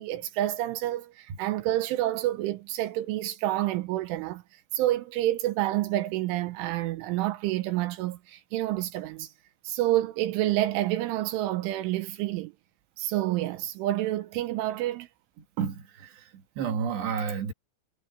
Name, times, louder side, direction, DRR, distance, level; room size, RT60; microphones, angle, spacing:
voice 1, 0.0-4.4 4.7-9.3 9.6-12.5 13.0-15.1, right 15 dB, 80° right, 3.4 m, -28 dB
voice 2, 15.6-17.5, right 7 dB, 65° right, 3.8 m, -31 dB
omnidirectional pair, 5.6 m